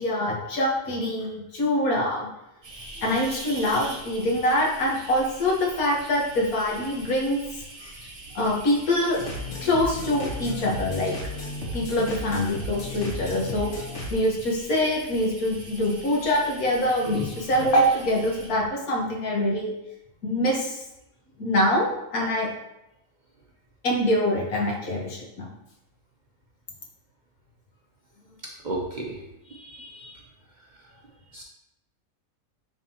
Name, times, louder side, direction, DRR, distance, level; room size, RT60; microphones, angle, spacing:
voice 1, 0.0-2.3 3.0-7.4 7.8-7.9 8.4-9.2 9.6-11.1 11.7-19.7 20.2-20.8 21.4-22.5 23.8-25.5, left 1 dB, 80° left, -2 dB, 1.8 m, -24 dB
sound 1, 2.6-18.7, right 2 dB, 75° right, 1.9 m, -43 dB
sound 2, 9.1-14.1, left 2 dB, 55° left, 1.3 m, -34 dB
voice 2, 28.6-30.2 31.3-31.4, right 2 dB, 40° right, -2 dB, 0.8 m, -35 dB
9.9 x 3.7 x 2.9 m, 0.88 s
omnidirectional pair, 1.5 m